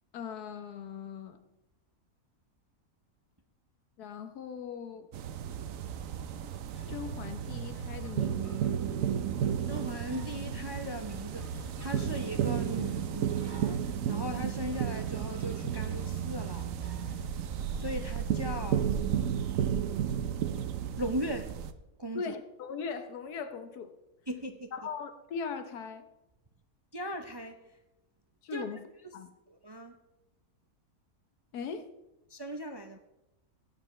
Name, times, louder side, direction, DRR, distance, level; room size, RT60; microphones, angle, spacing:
voice 1, 0.1-1.4 4.0-5.1 6.9-8.6 22.1-24.0 24.7-26.1 28.4-28.8 29.1-29.3 31.5-31.9, left 6 dB, 85° left, 9 dB, 1.5 m, -39 dB
sound 1, 5.1-21.7, right 9 dB, 65° right, 1.0 m, -33 dB
sound 2, 6.7-19.7, left 2 dB, 40° left, 3.1 m, -48 dB
voice 2, 9.7-16.7 17.7-18.9 21.0-21.5 22.0-22.2 24.3-24.7 26.9-27.6 28.5-28.7 29.5-30.0 32.3-33.0, equal, 40° right, 6 dB, 0.3 m, -38 dB
17.0 x 9.6 x 3.2 m, 0.94 s
omnidirectional pair, 1.6 m